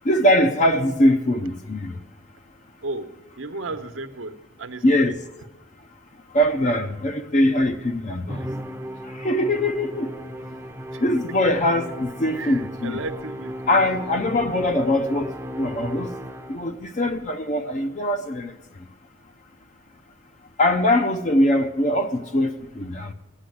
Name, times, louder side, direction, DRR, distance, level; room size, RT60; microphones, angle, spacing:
voice 1, 0.0-2.0 4.8-5.2 6.3-8.4 9.1-10.1 11.0-13.0 13.7-16.1 16.5-18.5 20.6-23.1, left 1 dB, 40° left, 0.6 m, -22 dB
voice 2, 3.4-5.2 10.9-11.4 12.3-13.8, right 3 dB, 80° right, 1.0 m, -34 dB
Musical instrument, 8.3-16.8, equal, 15° right, 0.7 m, -35 dB
15.5 x 10.0 x 7.8 m
head